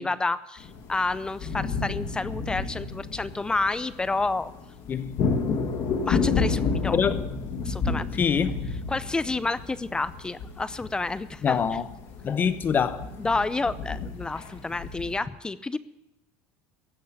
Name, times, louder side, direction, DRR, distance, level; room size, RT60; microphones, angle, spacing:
voice 1, 0.0-4.5 6.0-7.0 7.6-8.1 8.9-11.6 13.2-15.8, left 3 dB, 15° left, 0.5 m, -29 dB
sound 1, 0.6-15.2, left 4 dB, 55° left, 2.5 m, -31 dB
voice 2, 4.9-5.2 6.9-7.2 8.2-8.6 11.4-11.9 12.2-13.1, left 7 dB, 30° left, 0.9 m, -24 dB
16.0 x 5.5 x 10.0 m
supercardioid pair, 120°, 7 cm